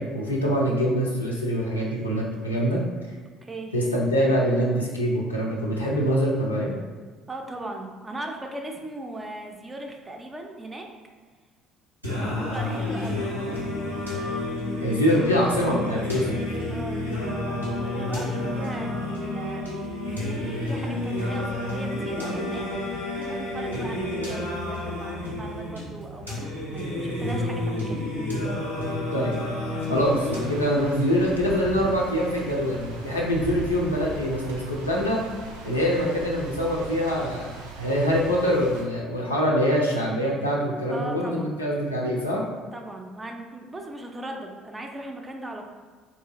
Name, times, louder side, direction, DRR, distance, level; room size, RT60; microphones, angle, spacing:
voice 1, 0.0-2.8 3.7-6.7 14.8-16.4 29.1-29.3 29.9-35.2 35.6-42.4, equal, 85° left, -3 dB, 0.5 m, -24 dB
voice 2, 3.4-3.7 7.3-10.9 12.2-13.3 16.7-17.0 17.6-19.7 20.2-22.7 23.1-28.0 40.9-41.6 42.7-45.7, right 2 dB, 20° right, 2 dB, 0.5 m, -38 dB
Singing, 12.0-31.0, left 1 dB, 90° right, 0.8 m, -30 dB
sound 1, 29.9-38.8, right 2 dB, 75° right, 0.4 m, -39 dB
3.6 x 2.7 x 2.9 m, 1.5 s
figure-of-eight pair, 55°, 0 cm